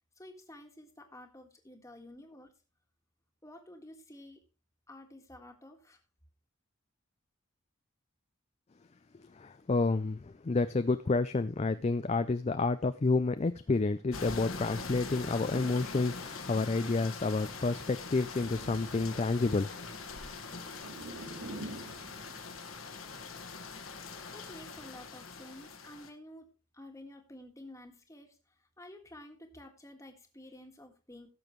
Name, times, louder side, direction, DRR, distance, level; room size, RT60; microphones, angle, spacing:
voice 1, 0.1-2.5 3.4-4.4 4.9-6.0 24.3-31.3, left 1 dB, 15° left, 1.7 m, -51 dB
voice 2, 9.4-19.7, left 3 dB, 30° left, 0.4 m, -29 dB
sound 1, 14.1-26.1, left 4 dB, 70° left, 1.6 m, -43 dB
sound 2, 14.7-22.7, right 1 dB, 90° right, 2.0 m, -49 dB
17.0 x 7.1 x 3.1 m
head